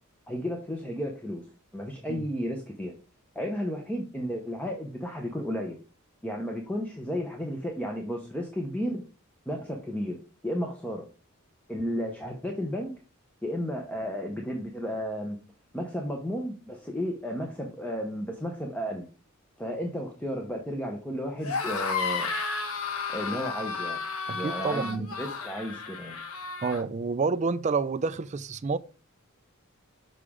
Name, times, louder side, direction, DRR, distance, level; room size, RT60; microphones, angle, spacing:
voice 1, 0.3-1.5 1.7-2.9 3.3-5.8 6.2-9.0 9.5-11.1 11.7-12.9 13.4-15.4 15.7-19.1 19.6-22.3 23.1-24.0 24.3-26.2, equal, 5° left, 0.8 m, -33 dB
sound 1, 21.4-26.8, left 4 dB, 80° left, 1.1 m, -32 dB
voice 2, 24.3-25.2 26.6-28.8, right 4 dB, 30° right, 0.4 m, -29 dB
6.6 x 4.9 x 3.6 m
head